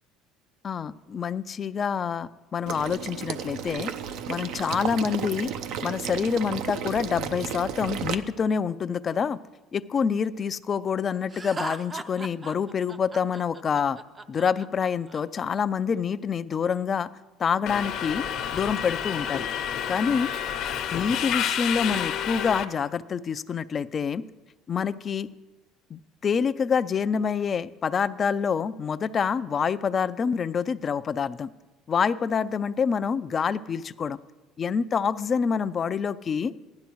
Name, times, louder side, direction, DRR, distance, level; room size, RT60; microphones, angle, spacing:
voice 1, 0.6-3.9 4.3-5.5 5.8-9.4 9.7-14.0 14.3-17.1 17.4-18.2 18.5-19.4 19.9-20.3 20.9-24.2 24.7-25.3 25.9-31.5 31.9-34.2 34.6-36.5, left 6 dB, 35° left, 15 dB, 0.4 m, -27 dB
Water / Liquid, 2.7-8.1, right 8 dB, 65° right, 0.6 m, -33 dB
Laughter, 11.3-15.2, right 3 dB, 25° right, 0.6 m, -38 dB
Subway metro underground, 17.7-22.6, left 9 dB, 60° left, 0.9 m, -29 dB
15.0 x 11.5 x 3.1 m, 1.1 s
supercardioid pair, 100°, 0 cm